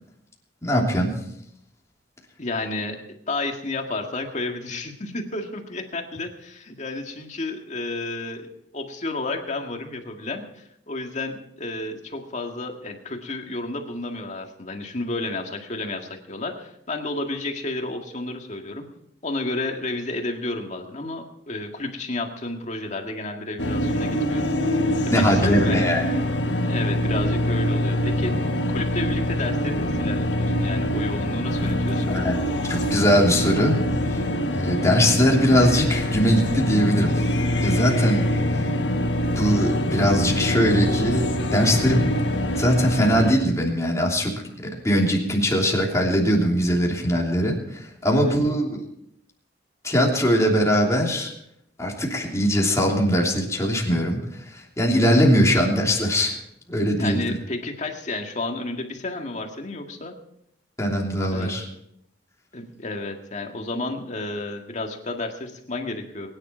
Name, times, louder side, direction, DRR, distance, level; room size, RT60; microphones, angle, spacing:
voice 1, 0.6-1.1 25.1-26.0 32.1-32.3 32.6-33.8 34.1-34.2 34.5-37.2 37.6-38.2 39.3-42.1 42.6-48.8 49.8-51.3 51.8-56.3 56.7-57.3 60.8-61.7, equal, 15° left, -1 dB, 3.1 m, -21 dB
voice 2, 2.4-3.0 3.3-18.8 19.2-24.4 25.2-25.9 26.6-32.2 48.0-48.4 56.9-60.1 61.3-61.5 62.5-66.3, left 2 dB, 40° left, 3 dB, 2.0 m, -31 dB
sound 1, 23.6-43.3, left 1 dB, 80° left, 1.5 m, -24 dB
22.5 x 10.5 x 4.5 m, 0.74 s
head